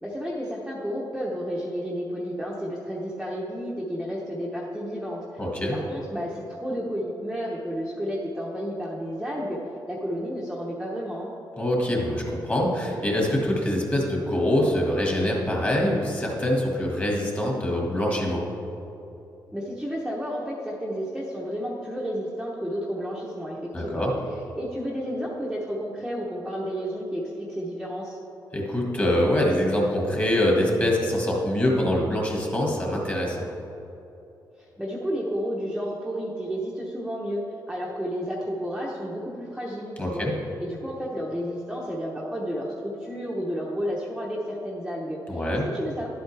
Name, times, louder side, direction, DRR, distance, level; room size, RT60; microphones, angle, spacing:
voice 1, 0.0-9.6 9.9-11.3 19.5-24.1 24.5-28.2 34.6-40.3 40.6-46.1, equal, 5° right, -5 dB, 0.9 m, -31 dB
voice 2, 5.4-5.8 11.6-18.4 23.7-24.1 28.5-33.5 40.0-40.3 45.3-45.7, left 1 dB, 20° left, -2 dB, 1.8 m, -24 dB
11.5 x 8.0 x 3.3 m, 3.0 s
wide cardioid pair, 135°, 8 cm